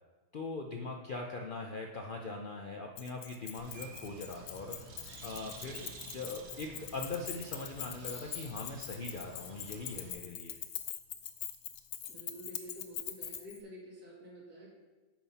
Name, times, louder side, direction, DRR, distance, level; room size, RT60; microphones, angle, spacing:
voice 1, 0.3-10.5, left 3 dB, 65° left, 2 dB, 0.5 m, -41 dB
Keys jangling, 3.0-13.6, left 11 dB, 85° left, 1.1 m, -43 dB
Bird, 3.6-10.1, right 4 dB, 55° right, 0.9 m, -51 dB
voice 2, 12.1-14.7, equal, 90° right, -5 dB, 2.9 m, -49 dB
9.0 x 5.7 x 4.1 m, 1.2 s
omnidirectional pair, 1.6 m